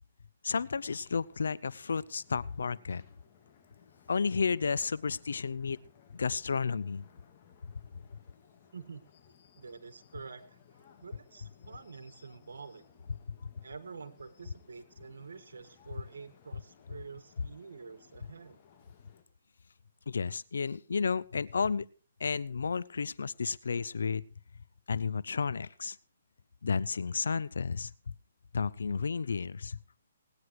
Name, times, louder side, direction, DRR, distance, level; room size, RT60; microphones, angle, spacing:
voice 1, 0.4-3.0 4.1-5.8 6.1-7.0 13.4-13.5 20.1-21.9 22.2-24.2 24.9-26.0 26.6-27.9 28.5-29.8, left 5 dB, 85° left, 20 dB, 0.6 m, -32 dB
sound 1, 0.6-19.2, left 7 dB, 35° left, 2.5 m, -62 dB
voice 2, 8.7-9.0 9.6-10.6 11.0-12.8 13.6-18.6, right 5 dB, 85° right, 12 dB, 1.8 m, -47 dB
18.5 x 9.6 x 4.7 m, 0.38 s
hypercardioid pair, 155°, 0 cm